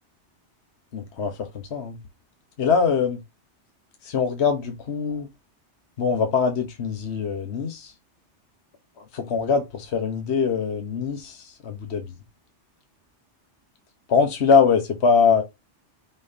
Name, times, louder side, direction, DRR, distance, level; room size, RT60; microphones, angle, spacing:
voice 1, 0.9-2.0 2.6-3.2 4.0-5.3 6.0-7.9 9.0-12.1 14.1-15.4, left 5 dB, 65° left, 1.4 m, -23 dB
6.1 x 5.4 x 2.8 m
omnidirectional pair, 1.2 m